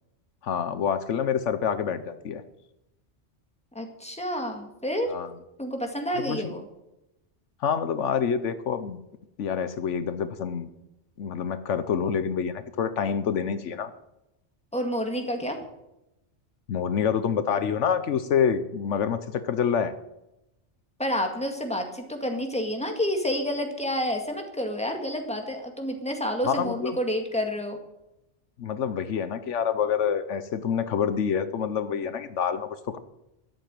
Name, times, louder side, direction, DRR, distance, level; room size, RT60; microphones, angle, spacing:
voice 1, 0.4-2.4 5.1-5.3 6.3-6.5 7.6-9.0 9.4-10.7 11.2-13.9 16.7-19.9 26.4-27.0 28.6-32.7, left 7 dB, 75° left, 12 dB, 1.1 m, -27 dB
voice 2, 3.7-5.1 5.6-6.7 14.7-15.6 21.0-27.8, equal, 5° left, 3 dB, 2.0 m, -29 dB
13.0 x 7.8 x 9.0 m, 0.89 s
omnidirectional pair, 1.2 m